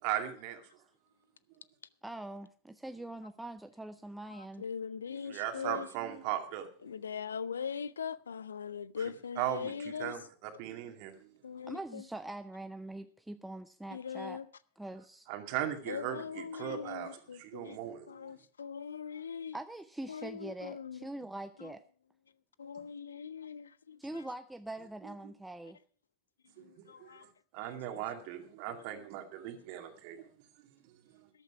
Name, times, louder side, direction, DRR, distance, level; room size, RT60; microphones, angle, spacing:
voice 1, 0.0-0.6 5.2-6.7 9.0-11.3 15.3-18.1 26.6-30.3 30.8-31.3, right 11 dB, 45° right, 2.3 m, -38 dB
voice 2, 2.0-4.7 11.6-14.4 14.8-15.3 19.5-21.8 24.0-25.8, right 1 dB, 5° right, 0.6 m, -43 dB
voice 3, 4.3-5.9 6.8-10.1 11.4-12.0 13.9-14.5 15.9-17.8 18.1-19.6 20.1-21.0 22.6-24.0 26.6-27.3, left 6 dB, 70° left, 0.6 m, -41 dB
14.0 x 12.0 x 4.7 m
figure-of-eight pair, 90°, 0 cm